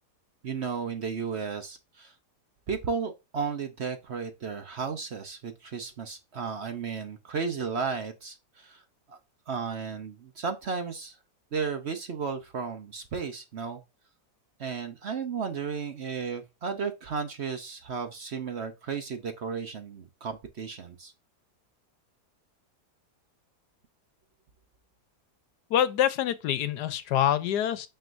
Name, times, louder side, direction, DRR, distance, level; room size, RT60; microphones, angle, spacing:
voice 1, 0.4-2.1 2.7-8.8 9.1-9.2 9.5-11.2 11.5-13.8 14.6-21.1, right 5 dB, 50° right, 0.9 m, -34 dB
voice 2, 25.7-27.9, left 11 dB, 85° left, 1.3 m, -25 dB
9.3 x 4.6 x 2.6 m
omnidirectional pair, 1.7 m